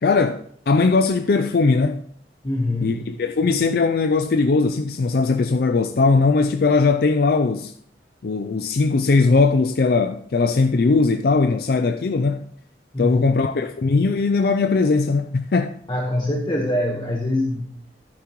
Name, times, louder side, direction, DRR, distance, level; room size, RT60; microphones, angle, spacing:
voice 1, 0.0-2.0 2.8-7.7 8.2-12.4 13.0-15.8, left 4 dB, 55° left, 0.4 m, -19 dB
voice 2, 2.4-3.0 12.9-13.3 15.9-17.6, left 1 dB, 25° left, 1.2 m, -23 dB
15.0 x 9.4 x 3.1 m
head